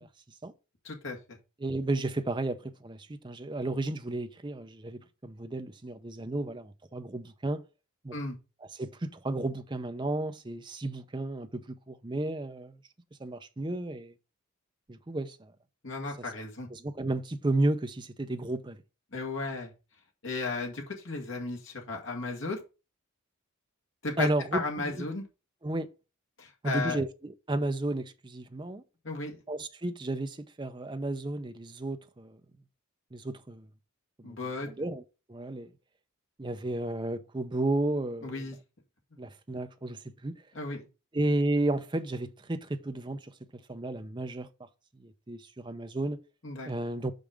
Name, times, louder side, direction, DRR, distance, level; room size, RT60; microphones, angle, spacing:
voice 1, 0.8-1.4 8.1-8.4 15.8-16.7 19.1-19.7 20.2-22.6 24.0-25.2 26.4-27.0 29.0-29.4 34.2-34.7 38.2-38.6 40.5-40.8 46.4-46.7, left 3 dB, 60° left, 1.9 m, -35 dB
voice 2, 1.6-7.6 8.0-8.1 8.8-12.7 13.2-14.1 14.9-15.5 16.7-18.8 24.2-24.9 25.6-25.9 26.6-28.8 29.5-32.4 33.1-33.7 34.2-34.4 34.7-35.0 35.3-35.7 36.4-38.4 39.2-40.4 41.1-43.3 43.7-44.5 45.0-46.2 46.6-47.1, right 2 dB, 20° right, 0.6 m, -33 dB
5.9 x 5.3 x 5.0 m
head